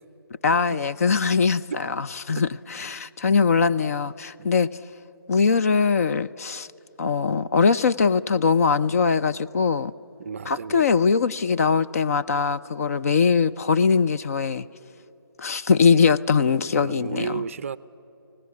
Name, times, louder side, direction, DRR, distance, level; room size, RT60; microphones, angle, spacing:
voice 1, 0.4-4.7 5.3-6.7 7.0-9.9 10.5-14.7 15.4-17.4, left 5 dB, 40° left, 0.4 m, -21 dB
voice 2, 10.2-10.9 16.6-17.8, right 6 dB, 35° right, 0.5 m, -33 dB
24.5 x 17.5 x 9.5 m
figure-of-eight pair, 160°, 12 cm